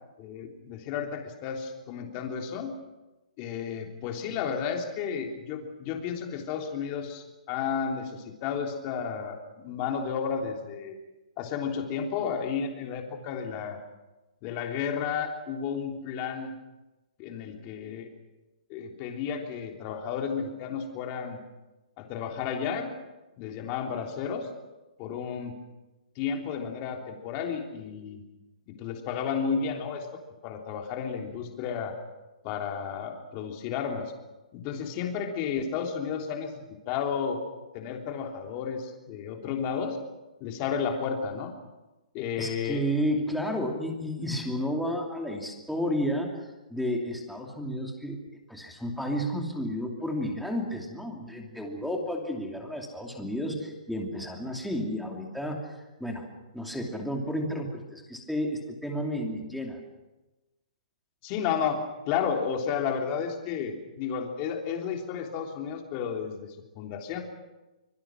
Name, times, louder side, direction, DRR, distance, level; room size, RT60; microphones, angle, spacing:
voice 1, 0.2-2.7 3.4-11.0 11.4-13.8 14.4-16.5 17.2-18.1 18.7-21.4 22.0-22.9 23.4-24.5 25.0-25.5 26.2-28.2 28.7-30.1 30.4-31.9 32.4-34.1 34.5-37.4 37.7-40.0 40.4-41.5 42.1-42.8 44.2-44.4 61.2-67.2, left 7 dB, 25° left, 2 dB, 3.4 m, -32 dB
voice 2, 42.4-46.4 46.7-48.2 48.5-56.3 56.5-59.8, equal, ahead, 0 dB, 2.7 m, -32 dB
25.0 x 23.0 x 6.2 m, 1.1 s
hypercardioid pair, 165°, 4 cm